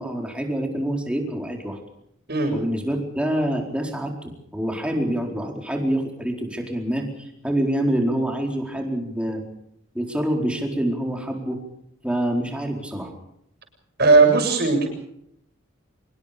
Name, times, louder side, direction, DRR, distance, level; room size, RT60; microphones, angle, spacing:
voice 1, 0.0-1.8 2.5-9.4 9.9-11.6 12.0-13.1, right 1 dB, 5° right, 2 dB, 4.4 m, -26 dB
voice 2, 14.0-14.9, right 3 dB, 55° right, 4 dB, 7.5 m, -17 dB
25.5 x 23.0 x 5.3 m, 0.74 s
head